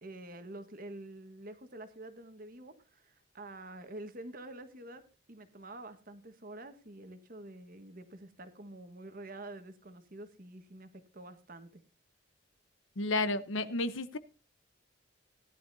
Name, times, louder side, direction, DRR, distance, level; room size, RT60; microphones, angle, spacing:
voice 1, 0.0-11.8, right 1 dB, 45° right, 1.5 m, -48 dB
voice 2, 13.0-14.2, left 2 dB, 75° left, 1.0 m, -31 dB
17.0 x 11.5 x 2.7 m
head